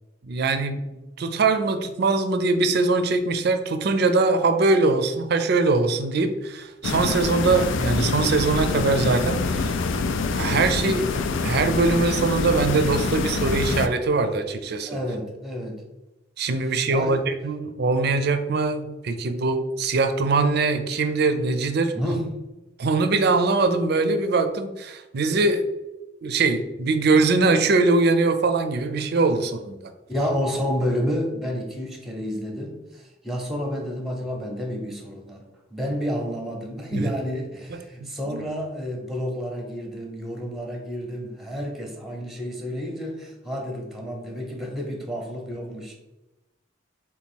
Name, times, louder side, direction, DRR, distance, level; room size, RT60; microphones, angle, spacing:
voice 1, 0.2-9.8 10.3-15.0 16.4-21.9 22.8-25.7 26.2-29.8 36.9-37.0 38.0-38.4, right 3 dB, 60° right, 9 dB, 0.5 m, -22 dB
sound 1, 6.8-13.9, left 4 dB, 80° left, 0.4 m, -25 dB
voice 2, 14.9-15.8 16.9-17.2 21.9-22.4 30.1-35.5 35.7-45.9, equal, ahead, 1 dB, 0.7 m, -30 dB
3.7 x 2.9 x 4.4 m, 1.0 s
head